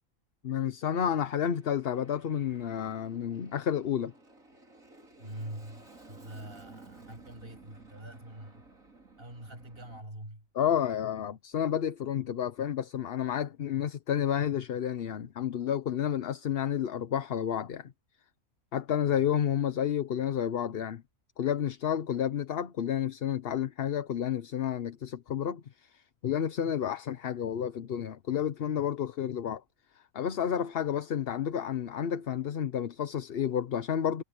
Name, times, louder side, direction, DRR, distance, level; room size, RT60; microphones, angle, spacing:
voice 1, 0.4-4.1 10.5-17.9 18.7-21.0 21.4-29.6 30.1-34.2, left 9 dB, 50° left, 0.9 m, -30 dB
Aircraft, 1.2-10.0, right 2 dB, 75° right, 5.9 m, -55 dB
voice 2, 5.2-8.7 9.2-10.5, right 1 dB, 40° right, 7.3 m, -44 dB
omnidirectional pair, 1.4 m